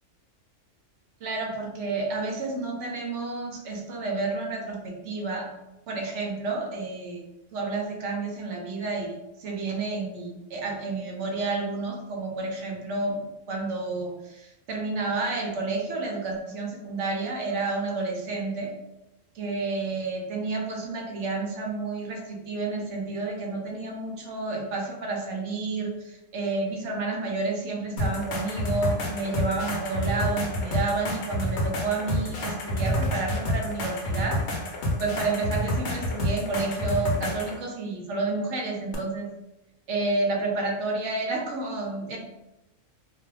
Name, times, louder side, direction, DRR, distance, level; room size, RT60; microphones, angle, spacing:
voice 1, 1.2-5.5 5.9-7.2 7.5-18.7 19.3-34.4 35.0-39.3 39.9-42.2, right 3 dB, 70° right, 0 dB, 0.9 m, -30 dB
sound 1, 28.0-37.6 38.9-39.0, left 1 dB, 65° left, 0.8 m, -29 dB
2.4 x 2.3 x 3.2 m, 0.95 s
omnidirectional pair, 1.3 m